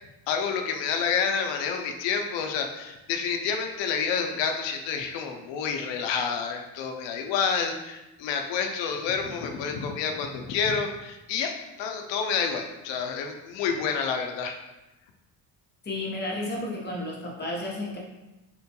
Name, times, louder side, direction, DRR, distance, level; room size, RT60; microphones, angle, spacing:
voice 1, 0.3-14.6, left 6 dB, 85° left, 4 dB, 0.5 m, -29 dB
voice 2, 15.8-18.0, left 1 dB, 25° left, -2 dB, 0.8 m, -32 dB
4.3 x 2.2 x 2.8 m, 1.0 s
cardioid pair, 120°, 43 cm